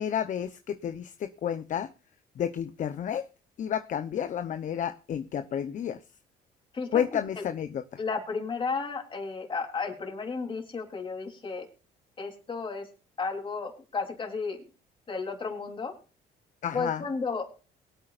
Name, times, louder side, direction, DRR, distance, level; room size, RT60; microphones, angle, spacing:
voice 1, 0.0-1.9 2.4-3.3 3.6-6.0 6.9-7.8 16.6-17.0, left 9 dB, 50° left, 10 dB, 0.9 m, -31 dB
voice 2, 6.7-7.2 8.0-11.7 12.2-12.9 13.2-14.6 15.1-15.9 16.7-17.4, left 4 dB, 30° left, 3 dB, 3.6 m, -33 dB
23.0 x 8.7 x 2.5 m, 0.34 s
cardioid pair, 110°, 17 cm